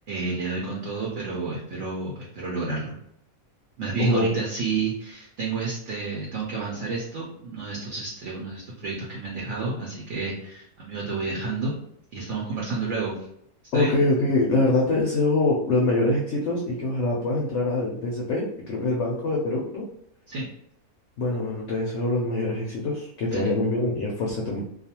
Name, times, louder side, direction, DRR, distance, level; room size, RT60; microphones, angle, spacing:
voice 1, 0.1-2.9 3.8-11.7 12.1-13.2 13.7-13.9 20.3-20.5 23.3-23.5, right 4 dB, 65° right, -3 dB, 0.8 m, -30 dB
voice 2, 4.0-4.3 13.7-19.8 21.2-24.7, left 2 dB, 65° left, -3 dB, 0.8 m, -24 dB
2.4 x 2.4 x 2.8 m, 0.74 s
omnidirectional pair, 1.5 m